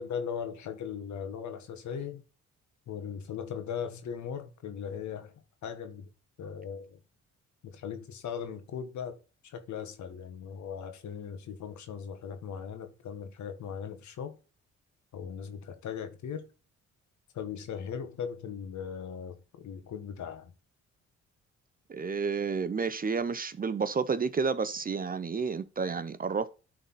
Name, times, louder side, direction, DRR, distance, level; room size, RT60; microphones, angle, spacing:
voice 1, 0.0-2.2 2.9-5.3 5.6-6.1 6.4-7.0 7.6-9.2 9.4-14.4 15.1-16.4 17.3-20.5, left 7 dB, 70° left, 1.5 m, -38 dB
voice 2, 21.9-26.5, right 5 dB, 30° right, 0.6 m, -30 dB
11.5 x 4.0 x 4.1 m
cardioid pair, 90°, 30 cm